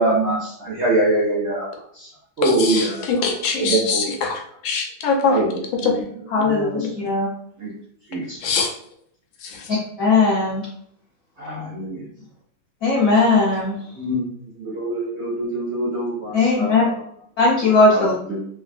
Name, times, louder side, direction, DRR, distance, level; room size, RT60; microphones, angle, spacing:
voice 1, 0.0-1.7 1.9-2.1 2.4-3.1 3.6-4.1 5.3-6.0 6.4-6.9 7.6-7.7 8.1-8.4 11.4-12.0 13.9-17.0 17.9-18.5, right 2 dB, 75° right, -5 dB, 0.6 m, -24 dB
voice 2, 2.4-5.4 5.8-6.0 8.4-8.7 9.4-9.7, left 4 dB, 80° left, 2 dB, 1.4 m, -23 dB
voice 3, 6.3-7.3 9.7-10.6 12.8-13.7 16.3-16.8 17.4-18.1, left 3 dB, 60° left, -7 dB, 0.9 m, -18 dB
3.2 x 2.6 x 2.5 m, 0.68 s
omnidirectional pair, 2.2 m